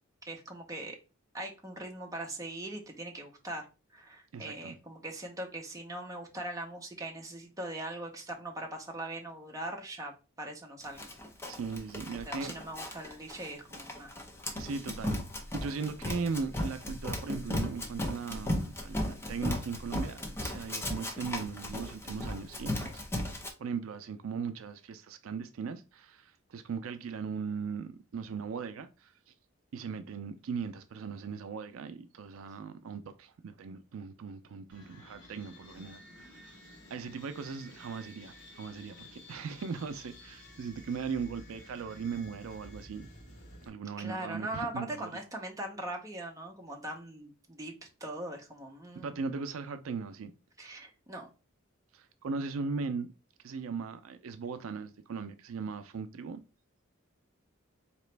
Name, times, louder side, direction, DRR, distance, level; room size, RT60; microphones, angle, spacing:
voice 1, 0.2-1.0 1.3-11.0 12.3-14.1 44.0-49.2 50.6-51.3, right 1 dB, 15° right, 0.8 m, -41 dB
voice 2, 4.3-4.8 11.5-12.5 14.6-15.2 15.5-23.0 23.6-29.1 29.7-36.6 36.9-43.1 43.6-45.1 49.0-50.3 51.9-53.1 53.4-56.4, right 5 dB, 75° right, 0.4 m, -38 dB
Run, 11.0-23.5, left 1 dB, 10° left, 0.7 m, -36 dB
sound 1, 34.7-43.7, left 1 dB, 60° left, 1.3 m, -52 dB
4.0 x 2.9 x 3.2 m
head